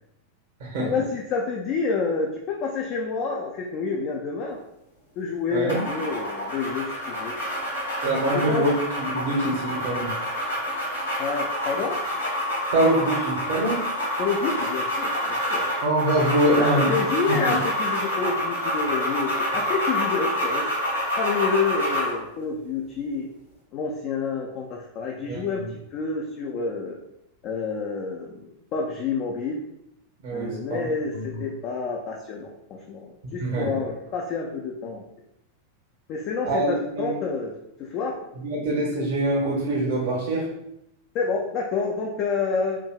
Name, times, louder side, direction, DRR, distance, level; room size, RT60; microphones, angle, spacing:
voice 1, 0.8-4.6 5.2-7.4 8.2-8.7 11.2-12.0 14.2-15.6 16.4-20.7 21.2-23.3 23.7-25.6 25.9-27.0 27.4-29.6 30.3-35.0 36.1-37.5 37.8-38.1 41.1-42.8, left 4 dB, 40° left, 0 dB, 0.4 m, -28 dB
voice 2, 5.5-5.8 8.0-8.7 9.0-10.1 12.7-13.8 15.8-16.9 17.3-17.6 25.3-25.7 30.2-31.2 33.4-33.8 36.4-37.1 38.4-40.5, right 1 dB, 55° right, -3 dB, 0.9 m, -24 dB
sound 1, 5.7-22.2, equal, 90° left, 1.4 m, -27 dB
4.6 x 2.7 x 2.3 m, 0.82 s
figure-of-eight pair, 90°, 0 cm